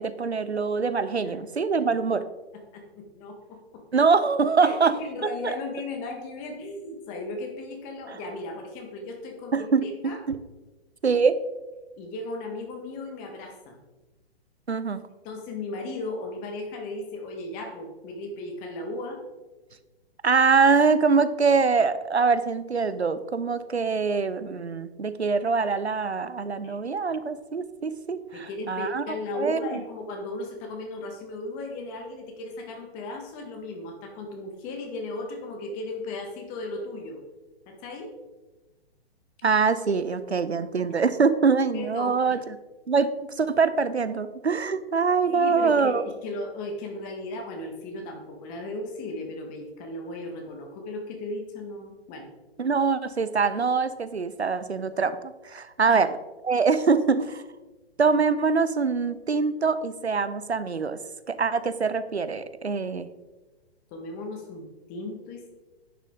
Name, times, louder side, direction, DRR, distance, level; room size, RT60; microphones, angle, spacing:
voice 1, 0.0-2.2 3.9-4.9 5.4-5.6 8.1-8.2 9.5-10.4 11.0-11.4 14.7-15.0 20.2-29.0 29.3-29.8 39.4-42.6 42.9-43.1 43.4-46.0 52.6-56.1 56.4-57.4 58.0-61.0 61.3-63.1, right 5 dB, 90° right, 12 dB, 0.7 m, -24 dB
voice 2, 2.5-3.8 4.6-10.2 12.0-13.8 15.2-19.2 26.6-26.8 27.1-27.2 28.3-37.2 37.7-38.1 41.7-42.4 45.3-52.3 55.9-56.0 63.9-65.5, left 2 dB, 25° left, 3 dB, 1.7 m, -36 dB
10.5 x 6.3 x 3.8 m, 1.2 s
figure-of-eight pair, 125°, 32 cm